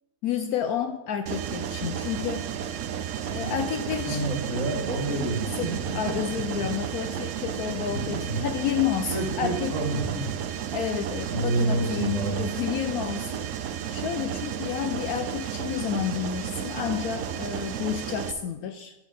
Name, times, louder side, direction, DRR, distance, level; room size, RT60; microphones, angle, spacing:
voice 1, 0.2-2.5 3.3-4.3 5.6-9.8 10.7-13.4 13.9-18.9, left 9 dB, 70° left, 8 dB, 0.9 m, -30 dB
Mechanisms, 1.3-18.3, right 9 dB, 70° right, 0.7 m, -33 dB
voice 2, 3.3-6.1 7.9-8.4 9.1-10.3 11.3-12.5, right 2 dB, 45° right, -1 dB, 2.3 m, -29 dB
11.5 x 6.0 x 4.1 m, 1.0 s
omnidirectional pair, 1.8 m